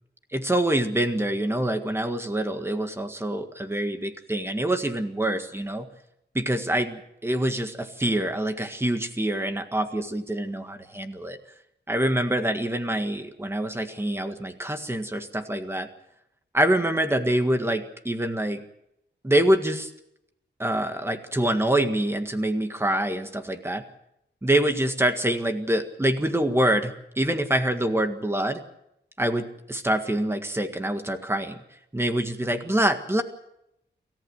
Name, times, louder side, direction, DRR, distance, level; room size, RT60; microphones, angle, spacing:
voice 1, 0.3-5.9 6.3-11.4 11.9-15.9 16.5-18.6 19.2-19.9 20.6-23.8 24.4-28.6 29.2-31.6 31.9-33.2, right 1 dB, 15° right, 7 dB, 1.8 m, -25 dB
27.0 x 14.5 x 7.9 m, 0.80 s
wide cardioid pair, 165°, 19 cm